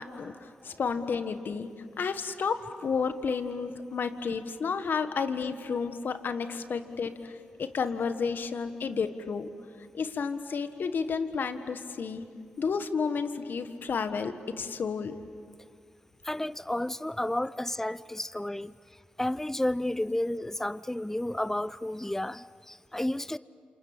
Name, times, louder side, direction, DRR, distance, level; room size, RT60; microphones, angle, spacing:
voice 1, 0.0-1.7 2.0-7.3 7.6-9.5 9.9-12.2 12.6-15.1, left 5 dB, 70° left, 9 dB, 1.6 m, -31 dB
voice 2, 16.2-18.7 19.2-23.4, left 1 dB, 10° left, 17 dB, 0.6 m, -31 dB
28.0 x 27.0 x 7.4 m, 2.2 s
supercardioid pair, 40°, 4 cm